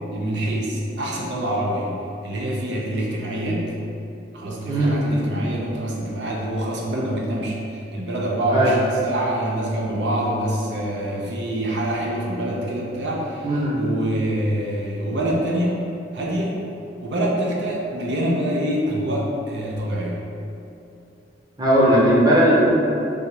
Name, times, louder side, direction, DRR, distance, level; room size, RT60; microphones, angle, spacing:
voice 1, 0.1-1.9 2.2-3.7 4.3-15.8 16.1-16.6 17.0-20.2, right 1 dB, 75° right, -3 dB, 0.6 m, -25 dB
voice 2, 13.4-13.7 21.6-22.7, equal, 20° right, -6 dB, 0.8 m, -17 dB
3.5 x 2.8 x 4.6 m, 2.6 s
head